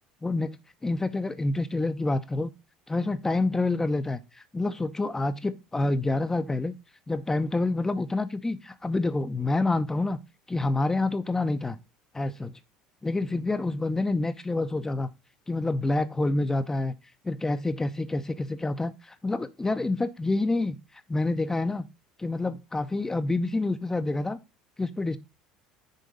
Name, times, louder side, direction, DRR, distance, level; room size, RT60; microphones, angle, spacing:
voice 1, 0.8-2.5 2.9-6.7 7.1-10.2 10.5-11.8 12.1-12.5 13.0-15.1 15.5-16.9 17.2-20.8 21.1-21.9 22.2-24.4 24.8-25.2, left 2 dB, 15° left, 0.7 m, -27 dB
6.6 x 3.7 x 5.1 m
hypercardioid pair, 80°, 3 cm